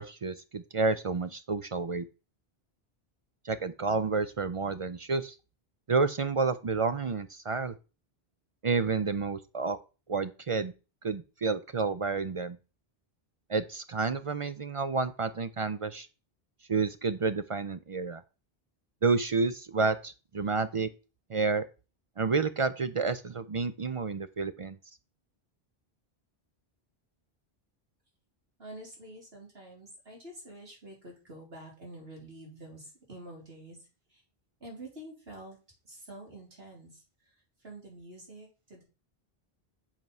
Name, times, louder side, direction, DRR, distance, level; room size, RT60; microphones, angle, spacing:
voice 1, 0.0-2.1 3.4-5.4 5.9-7.7 8.6-9.8 10.1-10.7 11.0-12.6 13.5-16.1 16.7-18.2 19.0-20.9 21.3-21.6 22.2-24.8, right 4 dB, 45° right, 12 dB, 0.4 m, -30 dB
voice 2, 28.6-33.8 34.6-35.6 35.9-37.0 37.6-38.8, right 1 dB, 75° right, -2 dB, 3.7 m, -47 dB
7.4 x 4.6 x 5.4 m, 0.32 s
omnidirectional pair, 1.0 m